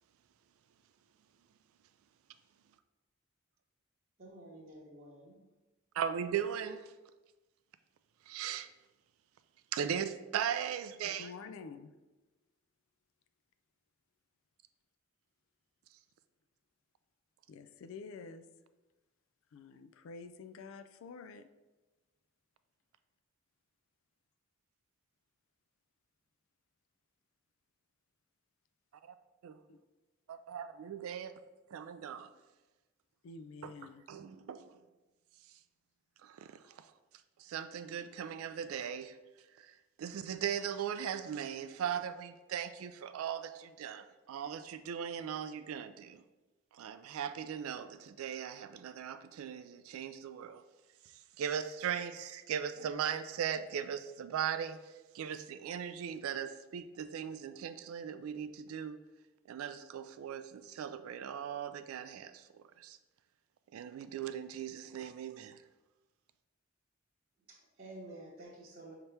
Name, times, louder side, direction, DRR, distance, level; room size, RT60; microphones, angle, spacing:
voice 1, 4.2-5.4 67.5-68.9, right 1 dB, 40° right, -8 dB, 0.9 m, -51 dB
voice 2, 5.9-6.9 8.3-8.7 9.7-11.3 29.0-29.1 29.4-29.6 30.3-31.4 31.7-32.3 33.6-34.8 36.2-36.9 37.4-39.2 39.6-46.2 46.7-50.6 51.0-59.0 59.5-63.0 63.7-65.6, right 8 dB, 85° right, 11 dB, 0.3 m, -39 dB
voice 3, 11.0-11.9 17.5-18.4 19.5-21.5 29.7-29.8 33.2-34.0, left 4 dB, 70° left, 10 dB, 0.3 m, -48 dB
5.5 x 2.9 x 3.3 m, 1.1 s
head